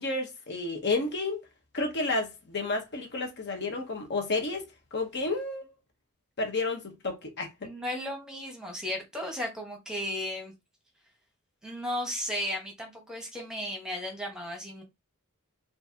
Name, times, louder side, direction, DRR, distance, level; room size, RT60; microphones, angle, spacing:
voice 1, 0.0-1.4 1.7-4.7 4.9-5.7 6.4-7.7, left 3 dB, 50° left, 0.9 m, -31 dB
voice 2, 7.6-10.5 11.6-14.8, left 1 dB, 5° right, 1.2 m, -35 dB
4.5 x 2.6 x 2.7 m
head